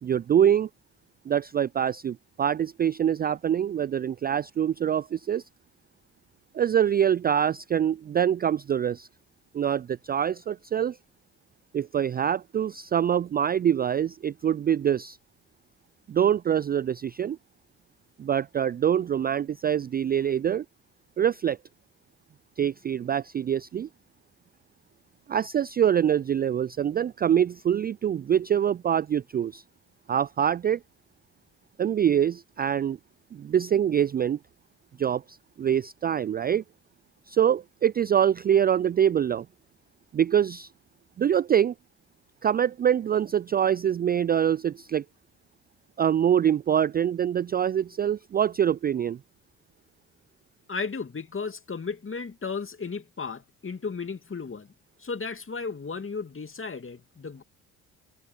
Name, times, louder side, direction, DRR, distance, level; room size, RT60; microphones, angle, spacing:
voice 1, 0.0-0.7 1.3-5.4 6.5-9.1 9.5-11.0 11.7-15.2 16.1-17.4 18.2-20.6 21.2-21.6 22.6-23.9 25.3-29.6 30.1-30.8 31.8-33.0 33.3-34.4 35.0-36.6 37.3-39.5 40.1-40.7 41.2-41.7 42.4-45.0 46.0-49.2, right 9 dB, 25° right, 0.4 m, -24 dB
voice 2, 50.7-54.7 55.0-57.4, left 5 dB, 30° left, 2.7 m, -34 dB
hypercardioid pair, 45°, 42 cm